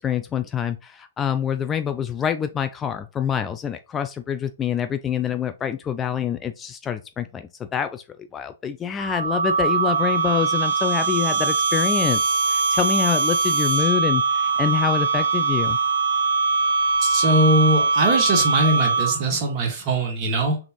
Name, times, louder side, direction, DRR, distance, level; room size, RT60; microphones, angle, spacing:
voice 1, 0.0-8.0 8.3-15.8, left 8 dB, 20° left, 9 dB, 0.3 m, -26 dB
sound 1, 9.0-19.4, right 4 dB, 65° right, 0.9 m, -22 dB
voice 2, 17.0-20.6, right 1 dB, 35° right, 2 dB, 1.6 m, -21 dB
3.5 x 3.4 x 2.9 m, 0.30 s
figure-of-eight pair, 120°, 0 cm